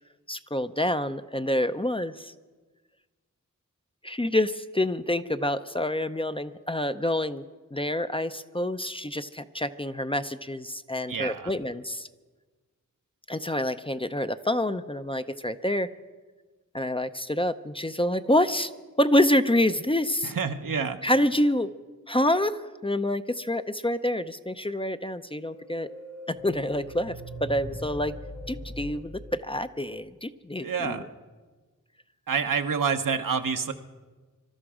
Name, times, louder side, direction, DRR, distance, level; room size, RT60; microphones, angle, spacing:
voice 1, 0.3-2.3 4.0-7.4 7.7-12.1 13.3-15.9 16.7-18.7 19.0-20.3 21.0-21.7 22.1-25.9 26.4-27.2 27.4-28.1 28.5-31.0, left 1 dB, 15° left, 10 dB, 0.6 m, -27 dB
voice 2, 11.1-11.5 20.2-21.0 30.6-31.0 32.3-33.7, right 6 dB, 75° right, 7 dB, 1.0 m, -28 dB
sound 1, 25.4-30.1, left 1 dB, 65° left, 3.6 m, -41 dB
23.5 x 12.5 x 4.9 m, 1.3 s
cardioid pair, 50°, 33 cm